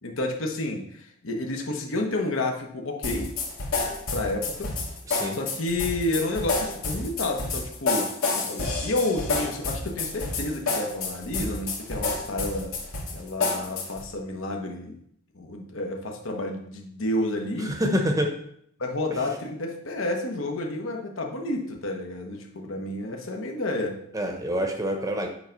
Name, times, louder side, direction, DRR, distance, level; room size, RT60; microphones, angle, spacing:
voice 1, 0.0-3.3 4.1-4.7 5.3-12.7 13.1-15.0 15.3-17.7 18.8-24.0, left 2 dB, 70° left, 1 dB, 1.1 m, -30 dB
sound 1, 3.0-14.1, left 3 dB, 85° left, 2.0 m, -29 dB
voice 2, 5.1-5.4 17.6-18.4 24.1-25.3, equal, 15° right, 4 dB, 0.8 m, -26 dB
8.6 x 3.4 x 5.2 m, 0.70 s
head